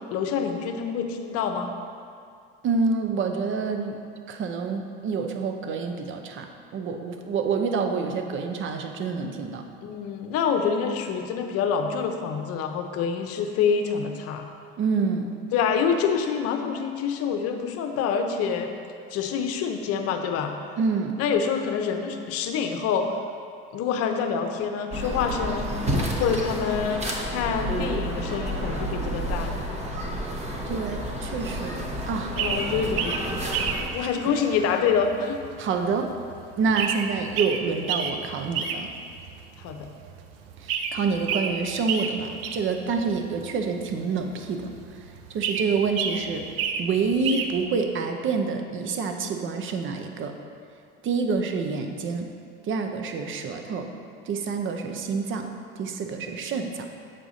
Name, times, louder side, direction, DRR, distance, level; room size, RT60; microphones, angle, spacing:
voice 1, 0.1-1.7 9.8-14.5 15.5-18.7 19.1-20.5 21.2-23.1 23.7-29.5 32.4-33.4 33.9-35.4 39.6-39.9, left 6 dB, 55° left, 5 dB, 0.8 m, -26 dB
voice 2, 2.6-4.0 4.3-9.7 14.8-15.3 20.8-21.1 30.7-31.8 32.1-32.3 34.0-34.3 35.6-36.1 36.6-38.9 40.6-44.7 45.3-46.5 46.8-50.4 51.0-52.3 52.6-53.9 54.3-55.5 55.8-56.9, right 5 dB, 45° right, 5 dB, 0.8 m, -27 dB
sound 1, 24.9-33.9, equal, 25° right, 1.0 m, -30 dB
sound 2, 30.3-47.6, right 6 dB, 80° right, 0.6 m, -32 dB
7.6 x 4.8 x 4.0 m, 2.3 s
hypercardioid pair, 90°, 29 cm